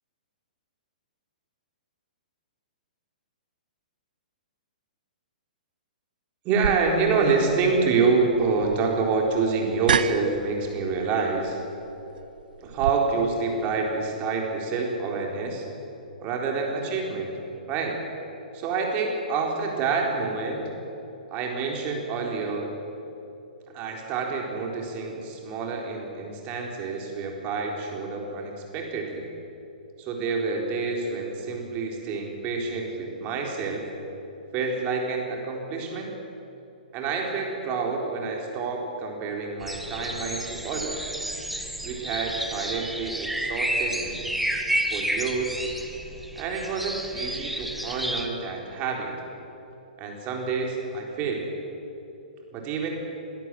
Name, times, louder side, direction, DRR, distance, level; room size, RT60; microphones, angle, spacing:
voice 1, 6.4-11.6 12.6-15.7 16.2-17.3 17.7-18.0 18.5-20.7 21.3-22.7 23.7-29.3 30.0-33.9 34.5-36.1 36.9-41.1 41.8-44.3 44.9-45.6 46.4-49.1 50.0-51.5 52.5-52.9, right 4 dB, 30° right, 1 dB, 4.1 m, -27 dB
sound 1, 6.6-12.9, right 7 dB, 75° right, 0.9 m, -32 dB
sound 2, 39.6-48.3, right 1 dB, ahead, 1.4 m, -31 dB
22.0 x 13.0 x 9.2 m, 2.9 s
hypercardioid pair, 140°, 5 cm